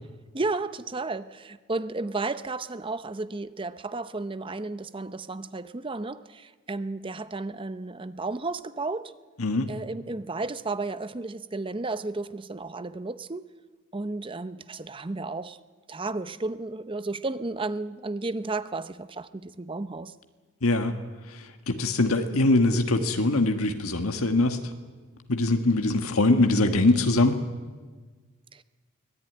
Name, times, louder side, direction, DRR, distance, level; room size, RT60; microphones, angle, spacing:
voice 1, 0.3-9.1 9.7-13.5 13.9-15.6 15.9-20.1 28.5-28.6, right 3 dB, 25° right, 0.6 m, -33 dB
voice 2, 20.6-20.9 21.3-24.6 25.3-27.4, left 2 dB, 80° left, 1.5 m, -23 dB
24.0 x 17.5 x 9.5 m
head